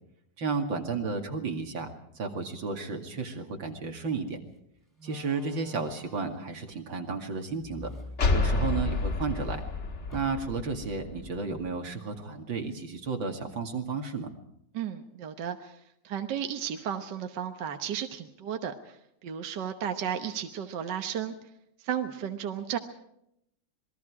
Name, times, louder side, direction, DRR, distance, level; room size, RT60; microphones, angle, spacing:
voice 1, 0.4-1.9 2.1-4.4 5.0-7.9 8.3-9.6 10.1-14.3, right 4 dB, 90° right, 3 dB, 3.1 m, -33 dB
Slam, 3.9-4.1 5.0-6.5 7.6-9.0 9.4-9.5 10.1-10.7, left 1 dB, 10° left, 3.3 m, -47 dB
sound 1, 8.2-11.7, left 3 dB, 40° left, 1.6 m, -29 dB
voice 2, 14.7-15.8 16.0-19.0 19.2-21.4 21.8-22.8, right 9 dB, 65° right, 6 dB, 1.7 m, -33 dB
27.5 x 20.5 x 4.9 m, 0.78 s
omnidirectional pair, 2.1 m